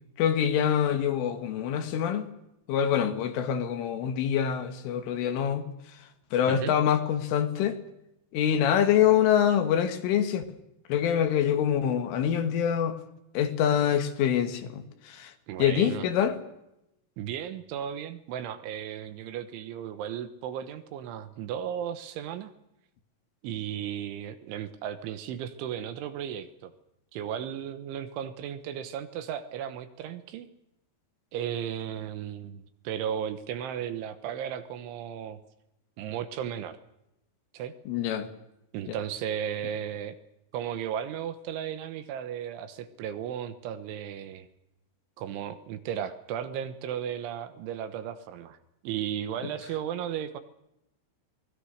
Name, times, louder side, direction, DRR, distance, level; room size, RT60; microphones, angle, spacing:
voice 1, 0.2-2.3 2.7-5.7 6.3-7.8 8.3-10.4 10.9-13.0 13.4-15.3 15.6-16.4 37.9-38.3 38.9-39.0, left 9 dB, 75° left, 4.1 m, -25 dB
voice 2, 15.5-16.1 17.2-22.5 23.4-26.7 27.1-30.5 31.3-35.4 36.0-36.8 37.5-37.7 38.7-40.2 40.5-44.5 45.2-48.6 48.8-50.4, right 9 dB, 75° right, 3.4 m, -35 dB
26.5 x 20.5 x 6.6 m
omnidirectional pair, 5.9 m